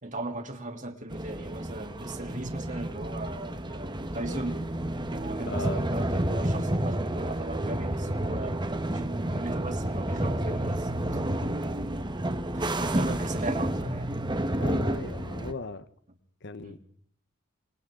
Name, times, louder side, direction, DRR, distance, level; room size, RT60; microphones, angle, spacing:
voice 1, 0.0-4.6 5.1-8.6 8.9-12.1 12.5-14.1 16.6-16.8, right 2 dB, 40° right, 3.3 m, -38 dB
sound 1, 1.1-15.5, right 1 dB, 20° right, 1.3 m, -30 dB
voice 2, 5.5-5.8 14.6-15.8 16.4-16.8, left 3 dB, 55° left, 1.1 m, -37 dB
29.0 x 24.0 x 3.9 m
head